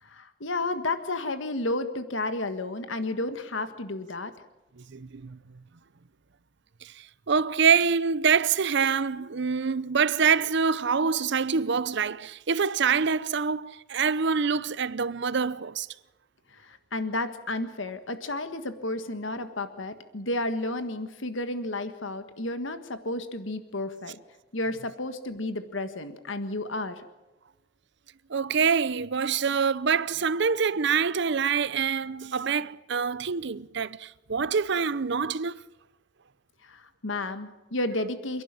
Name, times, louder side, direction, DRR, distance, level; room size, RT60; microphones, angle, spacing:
voice 1, 0.0-4.3 16.5-24.2 24.5-27.1 36.6-38.4, left 2 dB, 75° left, 1.6 m, -32 dB
voice 2, 4.8-5.4 6.8-15.9 28.3-35.6, right 6 dB, 65° right, 0.7 m, -25 dB
28.5 x 11.5 x 8.9 m
head